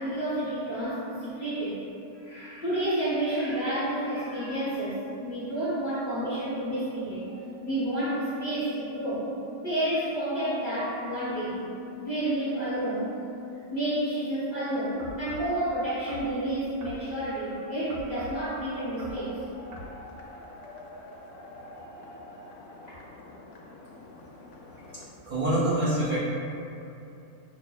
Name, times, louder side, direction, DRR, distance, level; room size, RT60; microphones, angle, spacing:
voice 1, 0.0-1.8 2.2-9.3 9.6-11.7 12.0-13.2 13.7-19.4 22.9-23.0, right 1 dB, 40° left, -12 dB, 0.6 m, -30 dB
sound 1, 15.0-15.5 16.1-16.3 16.8-17.0 17.9-18.4 19.0-19.2 19.7-19.9, right 1 dB, 85° right, 1.3 m, -42 dB
sound 2, 18.7-25.1, left 1 dB, 80° left, 1.2 m, -47 dB
voice 2, 24.9-26.2, right 1 dB, 70° right, -11 dB, 0.4 m, -26 dB
5.7 x 2.1 x 2.2 m, 2.7 s
omnidirectional pair, 1.8 m